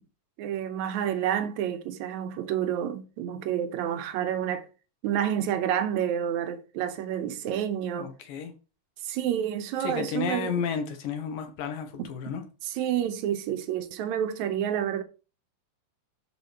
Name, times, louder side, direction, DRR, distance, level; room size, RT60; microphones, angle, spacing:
voice 1, 0.4-4.7 5.0-8.1 9.0-10.6 12.0-12.1 12.7-15.0, right 10 dB, 70° right, 2.0 m, -29 dB
voice 2, 8.0-8.5 9.8-12.4, left 6 dB, 80° left, 2.9 m, -32 dB
12.5 x 5.5 x 3.2 m
omnidirectional pair, 4.0 m